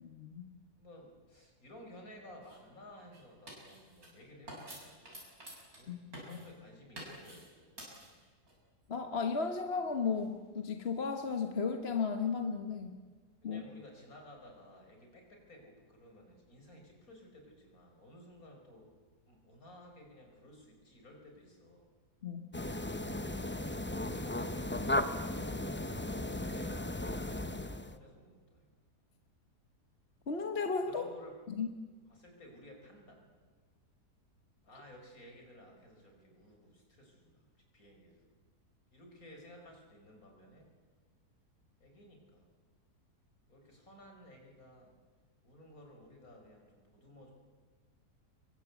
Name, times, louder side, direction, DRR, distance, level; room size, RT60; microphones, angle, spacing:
voice 1, 0.0-0.5 5.9-6.4 8.9-13.0 13.4-13.6 22.2-22.5 30.3-31.1 31.5-31.7, left 5 dB, 40° left, 6 dB, 1.4 m, -35 dB
voice 2, 0.8-5.4 5.7-6.0 6.2-7.8 13.4-18.9 19.3-21.9 23.8-28.7 30.9-31.4 32.1-33.3 34.6-37.5 37.7-38.3 38.9-40.7 41.8-42.5 43.5-45.0 45.4-47.3, left 1 dB, 60° left, 2 dB, 5.2 m, -55 dB
sound 1, 2.4-2.6 3.1-4.1 4.5-5.9 6.1-6.5 6.9-7.5 7.8-8.5 10.1-11.5, right 1 dB, 60° right, 7.5 m, -50 dB
sound 2, 22.5-28.0, left 1 dB, 10° left, 0.5 m, -36 dB
25.5 x 23.0 x 8.3 m, 1.5 s
omnidirectional pair, 1.7 m